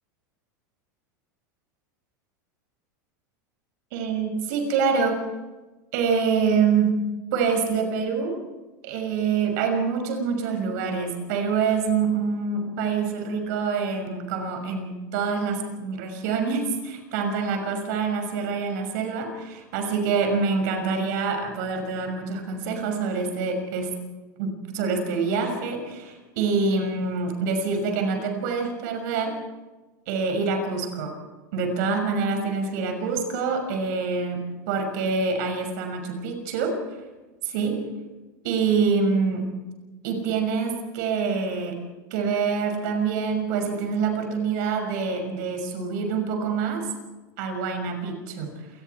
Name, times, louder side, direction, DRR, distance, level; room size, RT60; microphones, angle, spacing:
voice 1, 3.9-5.2 5.9-8.4 8.8-23.9 24.4-29.4 30.1-31.2 31.5-36.8 37.4-37.9 38.4-39.5 40.0-41.8 42.1-46.9 47.4-48.7, right 5 dB, 65° right, 4 dB, 6.2 m, -26 dB
28.5 x 20.0 x 4.7 m, 1.2 s
hypercardioid pair, 105°, 10 cm